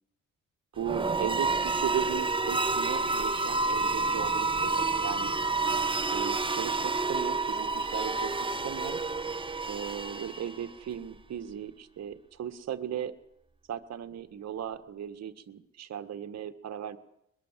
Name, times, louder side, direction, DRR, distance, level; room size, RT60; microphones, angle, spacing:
voice 1, 0.7-5.3 6.1-8.3 8.6-9.0 9.7-13.2 13.7-17.0, right 9 dB, 60° right, 9 dB, 1.7 m, -37 dB
sound 1, 0.8-10.7, right 3 dB, 15° right, 1.1 m, -29 dB
22.0 x 22.0 x 7.6 m, 0.79 s
cardioid pair, 90°, 30 cm